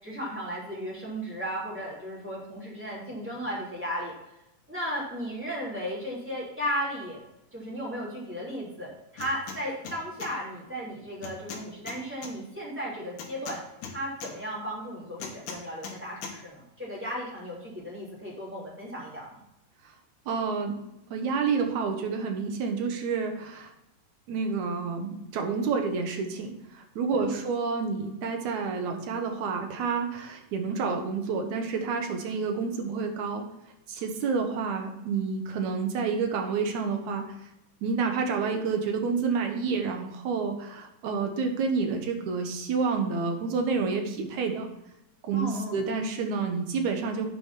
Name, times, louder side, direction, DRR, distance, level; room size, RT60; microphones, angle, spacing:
voice 1, 0.0-4.1 4.7-7.2 7.5-19.4 27.1-27.4 45.3-45.8, equal, 5° right, -6 dB, 2.6 m, -35 dB
sound 1, 9.2-9.6 9.8-10.3 11.2-12.3 13.2-14.3 15.2-16.0 16.2-16.3, left 6 dB, 75° left, 2.9 m, -39 dB
voice 2, 20.3-20.7 21.1-23.7 24.3-33.4 33.9-37.3 37.8-44.7 45.2-47.3, right 5 dB, 65° right, 4 dB, 2.1 m, -29 dB
8.9 x 5.0 x 5.6 m, 0.88 s
omnidirectional pair, 4.0 m